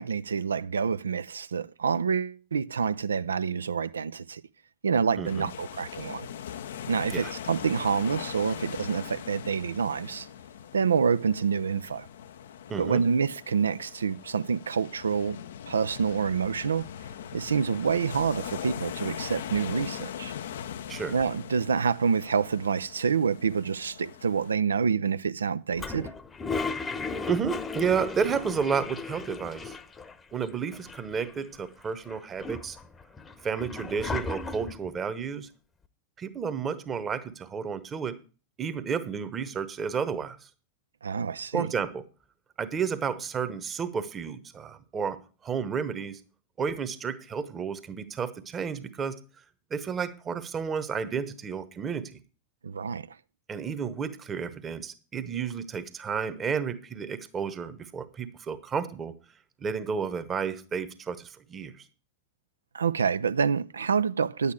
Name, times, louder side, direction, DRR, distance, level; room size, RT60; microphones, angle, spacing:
voice 1, 0.0-4.4 4.8-6.3 6.9-10.3 10.7-12.1 12.8-15.4 15.7-16.9 17.3-20.3 21.1-26.1 41.0-41.7 52.6-53.1 62.7-64.5, right 6 dB, 70° right, 0.4 m, -27 dB
sound 1, 5.2-24.6, left 9 dB, 60° left, 0.5 m, -41 dB
voice 2, 5.2-5.5 7.1-7.3 12.7-13.0 20.9-21.1 27.2-29.8 30.3-32.8 33.4-35.5 36.2-38.2 38.6-40.4 41.5-42.0 42.6-46.2 46.6-49.2 49.7-52.1 53.5-59.1 59.6-61.8, right 6 dB, 25° right, 1.1 m, -31 dB
Toilet flush, 25.8-30.1 30.4-30.5 30.7-31.6 32.1-34.9, left 4 dB, 15° left, 0.9 m, -35 dB
10.0 x 8.4 x 4.8 m
figure-of-eight pair, 90°, 0 cm